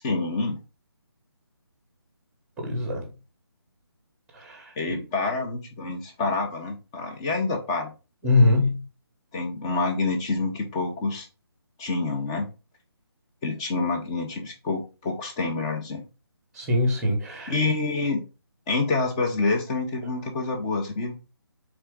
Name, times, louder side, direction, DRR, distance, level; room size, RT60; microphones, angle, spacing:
voice 1, 0.0-0.6 4.8-7.9 8.5-8.7 9.3-11.3 11.8-12.5 13.4-16.0 17.5-18.2 18.7-21.2, left 3 dB, 10° left, 0.6 m, -27 dB
voice 2, 2.6-3.0 4.4-5.0 8.2-8.8 16.6-17.5, left 2 dB, 5° right, 0.9 m, -23 dB
4.3 x 3.5 x 3.5 m
figure-of-eight pair, 165°, 14 cm